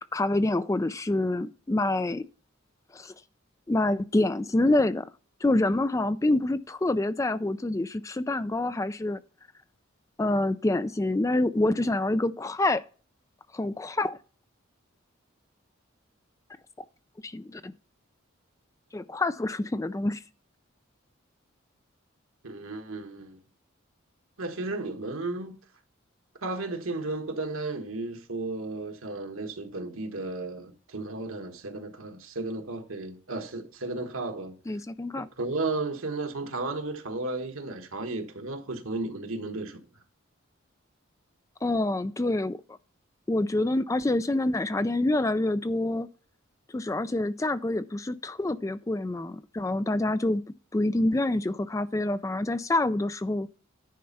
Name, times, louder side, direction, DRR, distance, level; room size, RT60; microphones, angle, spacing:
voice 1, 0.1-2.2 2.9-3.1 3.7-5.1 5.4-9.2 10.2-12.8 13.5-14.2 16.8-16.9 17.2-17.7 18.9-20.2 34.7-35.3 41.6-42.6 43.3-46.1 46.7-50.4 50.7-53.5, left 2 dB, 15° left, 0.3 m, -26 dB
voice 2, 22.4-23.4 24.4-25.6 26.4-34.5 35.2-39.8, right 2 dB, 90° right, 1.5 m, -34 dB
10.0 x 4.4 x 5.4 m
head